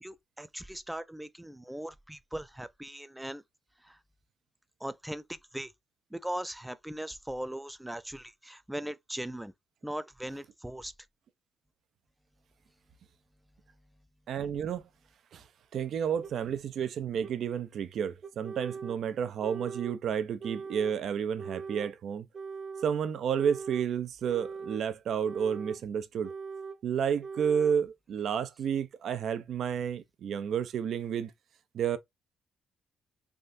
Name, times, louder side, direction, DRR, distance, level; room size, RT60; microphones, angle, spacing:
voice 1, 0.0-3.4 3.8-4.0 4.8-5.7 6.1-9.5 9.8-10.9, right 1 dB, 5° right, 0.4 m, -39 dB
voice 2, 14.3-14.8 15.3-15.4 15.7-22.3 22.8-26.3 26.8-31.3 31.7-32.0, right 8 dB, 65° right, 0.5 m, -31 dB
sound 1, 16.2-16.3 17.2-17.3 18.2-19.0 19.4-20.0 20.4-21.0 21.4-21.9 22.3-22.9 23.3-23.9 24.3-24.8 25.2-25.8 26.2-26.8 27.2-27.8, right 5 dB, 40° right, 1.0 m, -41 dB
3.5 x 2.5 x 2.6 m
cardioid pair, 90°, 0 cm